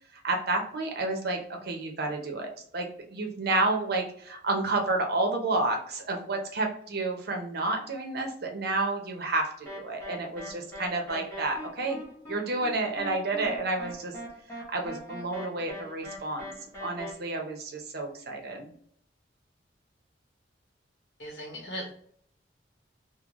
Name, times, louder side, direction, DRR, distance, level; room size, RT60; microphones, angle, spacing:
voice 1, 0.2-12.0 12.3-14.2 14.5-16.5 16.8-18.7, right 2 dB, 60° right, 2 dB, 0.8 m, -30 dB
sound 1, 9.7-17.1, equal, 15° left, 1.2 m, -41 dB
voice 2, 21.2-21.9, equal, 75° left, -2 dB, 1.4 m, -38 dB
3.7 x 2.2 x 3.0 m, 0.63 s
head